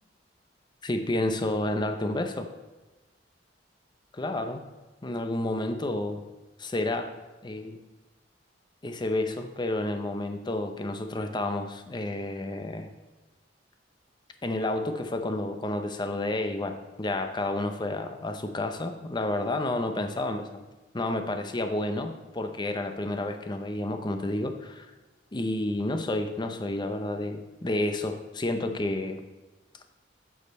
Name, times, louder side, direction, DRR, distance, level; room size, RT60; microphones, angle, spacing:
voice 1, 0.8-2.5 4.1-4.6 5.0-6.2 6.6-7.1 7.4-7.8 8.8-12.9 14.4-20.7 20.9-24.9 25.3-29.2, left 1 dB, 25° left, 7 dB, 0.6 m, -30 dB
8.4 x 6.4 x 4.2 m, 1.2 s
head